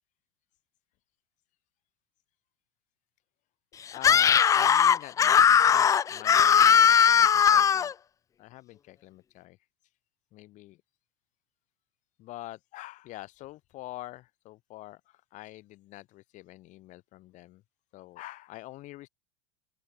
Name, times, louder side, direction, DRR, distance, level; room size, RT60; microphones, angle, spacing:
voice 1, 3.9-7.9 8.4-9.6 10.3-10.8 12.2-17.6 17.9-19.1, left 17 dB, 40° left, 1.4 m, -45 dB
Screaming, 4.0-7.9, left 8 dB, 20° left, 0.4 m, -19 dB
open air
figure-of-eight pair, 75°, 18 cm